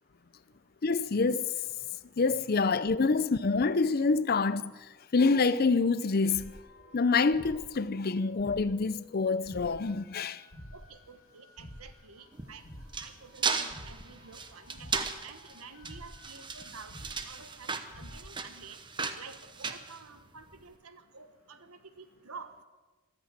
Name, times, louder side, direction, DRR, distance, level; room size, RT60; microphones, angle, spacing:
voice 1, 0.8-1.5 2.2-4.7 5.1-6.6 6.9-10.4, left 4 dB, 45° left, 0.5 m, -26 dB
sound 1, 6.3-18.2, left 1 dB, 75° left, 2.6 m, -51 dB
voice 2, 10.7-12.7 13.0-14.9 15.2-18.8 19.2-22.5, right 5 dB, 85° right, 1.3 m, -50 dB
sound 2, 12.3-20.6, right 5 dB, 20° right, 0.9 m, -36 dB
14.5 x 13.0 x 7.4 m
head